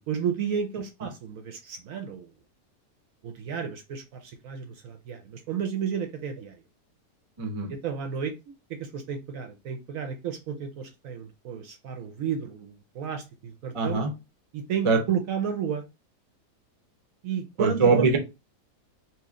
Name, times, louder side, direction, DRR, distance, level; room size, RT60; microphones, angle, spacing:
voice 1, 0.0-2.3 3.2-6.6 7.7-8.3 8.7-14.0 14.5-15.8 17.2-18.1, right 7 dB, 65° right, 5 dB, 0.9 m, -32 dB
voice 2, 7.4-7.7 13.7-14.1 14.8-15.0 17.6-18.2, right 4 dB, 40° right, 3 dB, 0.4 m, -22 dB
3.0 x 2.8 x 3.6 m, 0.26 s
omnidirectional pair, 1.8 m